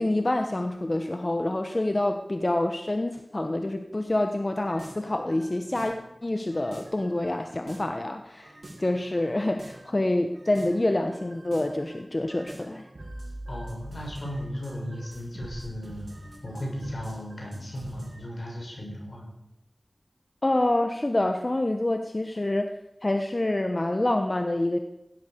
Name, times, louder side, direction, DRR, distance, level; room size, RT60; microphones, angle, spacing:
voice 1, 0.0-5.9 6.2-8.5 8.8-12.8 20.4-22.7 23.0-24.8, left 1 dB, 45° left, 6 dB, 1.2 m, -27 dB
sound 1, 4.6-6.1 6.5-8.0 8.4-10.0 10.3-18.2, right 1 dB, 85° right, 4.6 m, -45 dB
voice 2, 13.5-16.1 16.4-19.3, equal, 75° left, -1 dB, 6.9 m, -36 dB
17.0 x 12.5 x 6.9 m, 0.90 s
wide cardioid pair, 55°, 0 cm